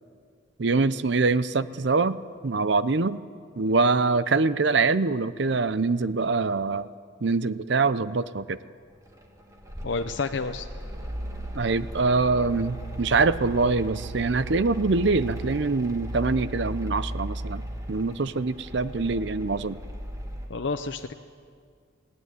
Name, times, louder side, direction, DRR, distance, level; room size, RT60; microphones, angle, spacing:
voice 1, 0.6-2.2 2.4-3.2 3.6-6.9 7.2-8.6 11.5-17.6 17.9-19.8, right 3 dB, 55° right, 15 dB, 0.6 m, -24 dB
Mechanical fan, 9.2-20.5, right 1 dB, 15° right, 2.0 m, -36 dB
voice 2, 9.8-10.7 20.5-21.1, left 4 dB, 60° left, 6 dB, 0.7 m, -29 dB
20.5 x 17.0 x 9.4 m, 2.1 s
head